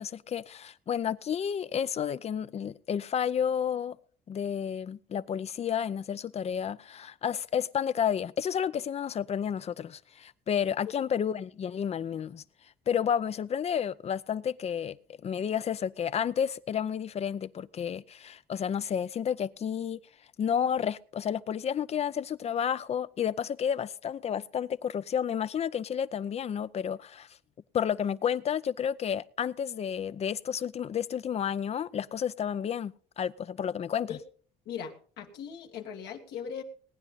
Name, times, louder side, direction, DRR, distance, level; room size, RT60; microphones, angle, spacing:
voice 1, 0.0-4.0 4.3-12.4 12.9-15.0 15.2-20.0 20.4-27.3 27.7-34.2, left 8 dB, 40° left, 0.6 m, -31 dB
voice 2, 34.7-36.6, left 7 dB, 80° left, 2.1 m, -39 dB
19.0 x 9.7 x 4.0 m
cardioid pair, 110°, 17 cm